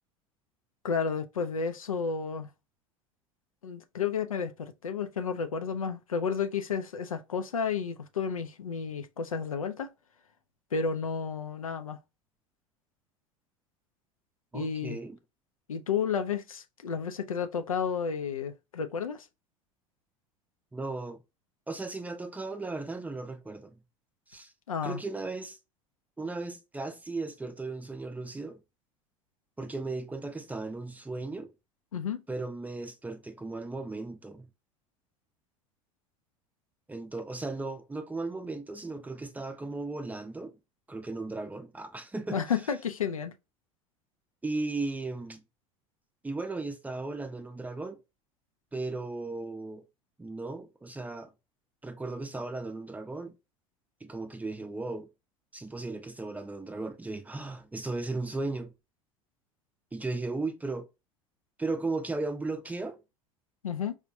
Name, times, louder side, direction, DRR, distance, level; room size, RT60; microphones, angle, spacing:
voice 1, 0.8-2.5 3.6-9.9 10.7-12.0 14.5-15.0 15.7-19.3 24.7-25.0 31.9-32.2 42.3-43.3 63.6-63.9, left 6 dB, 80° left, 0.4 m, -32 dB
voice 2, 14.5-15.2 20.7-21.2 21.7-23.8 24.3-24.5 24.8-25.6 26.2-28.6 29.6-31.5 32.3-34.5 36.9-40.6 40.9-42.4 44.4-45.4 46.2-48.0 48.7-49.8 50.2-51.3 51.8-53.3 54.0-55.1 55.5-58.7 59.9-60.9 61.6-63.0, right 3 dB, 10° right, 0.5 m, -36 dB
4.7 x 2.1 x 2.6 m
figure-of-eight pair, 75°, 17 cm